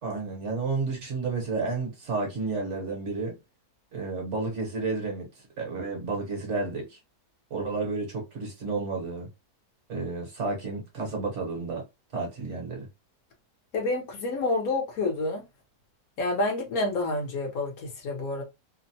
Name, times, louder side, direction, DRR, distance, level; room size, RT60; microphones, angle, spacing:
voice 1, 0.0-3.4 3.9-5.3 5.6-7.0 7.5-9.3 9.9-11.8 12.1-12.9, right 3 dB, 55° right, 1.1 m, -31 dB
voice 2, 13.7-15.4 16.2-18.4, left 2 dB, 70° left, 1.2 m, -28 dB
3.0 x 2.0 x 2.7 m
omnidirectional pair, 1.7 m